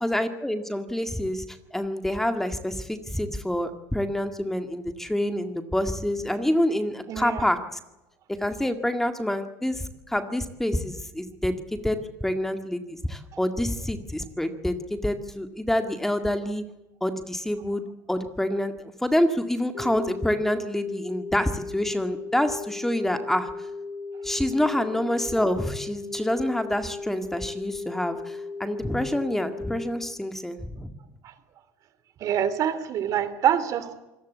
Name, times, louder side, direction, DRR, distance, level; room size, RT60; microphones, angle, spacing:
voice 1, 0.0-7.8 8.4-16.6 17.0-17.8 18.1-18.7 19.0-23.7 24.2-30.9, left 1 dB, 5° left, 8 dB, 1.9 m, -27 dB
voice 2, 7.1-7.4 32.2-33.9, right 9 dB, 50° right, 14 dB, 2.9 m, -25 dB
sound 1, 19.7-29.7, left 3 dB, 55° left, 3.0 m, -37 dB
26.0 x 18.5 x 8.3 m, 0.97 s
cardioid pair, 125°, 7 cm